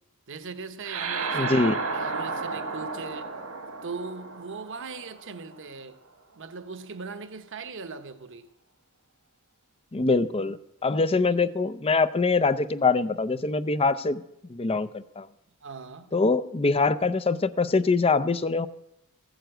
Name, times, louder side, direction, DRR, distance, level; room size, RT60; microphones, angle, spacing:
voice 1, 0.3-1.6 1.9-3.3 3.8-6.0 6.3-8.5 15.6-16.1, right 4 dB, 60° right, 1.0 m, -39 dB
sound 1, 0.8-5.6, right 4 dB, 75° right, 1.8 m, -32 dB
voice 2, 1.3-1.7 9.9-14.2 14.5-15.3 16.1-18.7, left 3 dB, 25° left, 0.5 m, -24 dB
15.5 x 9.1 x 7.9 m
head